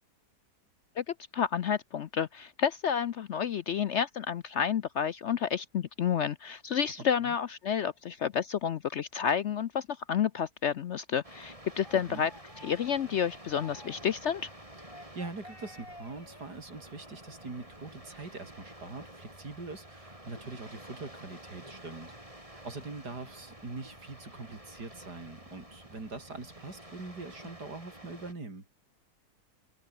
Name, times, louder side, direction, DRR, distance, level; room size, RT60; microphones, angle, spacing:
voice 1, 1.0-12.3 12.6-14.5, left 8 dB, 60° left, 0.7 m, -30 dB
sound 1, 11.2-28.3, right 1 dB, 20° right, 7.1 m, -50 dB
sound 2, 11.3-14.2 14.8-16.5, left 1 dB, 15° left, 5.7 m, -52 dB
voice 2, 11.9-12.3 15.1-28.7, right 3 dB, 80° right, 5.0 m, -43 dB
omnidirectional pair, 1.7 m